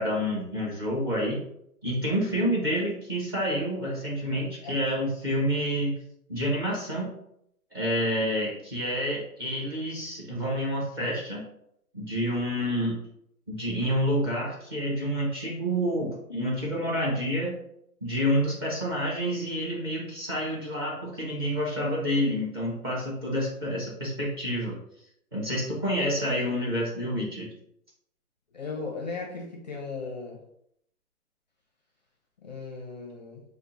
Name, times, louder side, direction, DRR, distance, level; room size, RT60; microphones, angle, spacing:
voice 1, 0.0-1.4 1.8-5.9 6.3-7.1 7.7-11.4 11.9-13.0 13.5-17.6 18.0-24.8 25.3-27.5, equal, 15° right, -4 dB, 0.5 m, -28 dB
voice 2, 28.5-30.4 32.4-33.4, left 4 dB, 30° left, -1 dB, 0.4 m, -37 dB
5.1 x 2.1 x 2.9 m, 0.73 s
hypercardioid pair, 145°, 46 cm